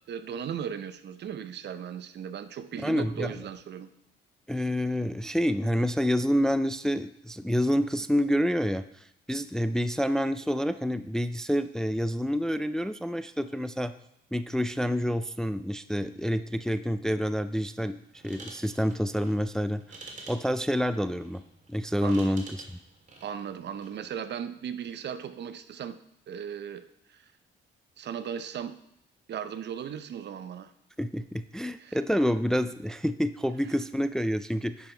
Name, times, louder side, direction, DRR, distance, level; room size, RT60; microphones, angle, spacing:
voice 1, 0.1-3.9 22.0-22.4 23.2-26.0 26.3-26.8 27.1-27.2 28.0-28.8 29.3-30.7 31.8-32.0, right 8 dB, 60° right, 12 dB, 0.7 m, -37 dB
voice 2, 2.8-3.4 4.5-13.9 14.3-18.0 18.2-19.8 20.3-21.4 21.7-22.6 31.0-34.9, equal, 5° left, 11 dB, 0.3 m, -28 dB
sound 1, 18.1-24.1, right 3 dB, 40° right, 2.0 m, -50 dB
10.5 x 5.5 x 4.4 m, 0.77 s
cardioid pair, 90°, 20 cm